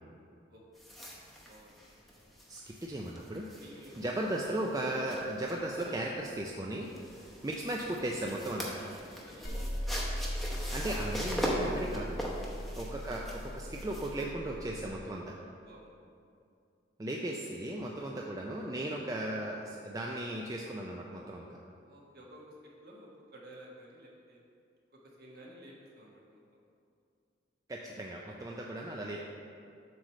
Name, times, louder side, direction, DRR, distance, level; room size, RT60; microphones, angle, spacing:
sound 1, 0.8-14.2, equal, ahead, 0.7 m, -41 dB
voice 1, 1.4-1.8 3.6-4.1 7.4-7.7 9.1-9.5 12.4-12.7 15.6-16.0 21.8-24.4 24.9-26.4 28.1-28.8, equal, 55° right, -3 dB, 1.2 m, -54 dB
voice 2, 2.5-3.5 4.0-6.9 7.4-8.8 10.7-12.2 12.8-15.3 17.0-21.6 27.7-29.2, right 1 dB, 20° right, -1 dB, 0.3 m, -36 dB
sound 2, 9.4-15.0, equal, 60° left, 1.1 m, -38 dB
7.6 x 3.2 x 6.2 m, 2.4 s
head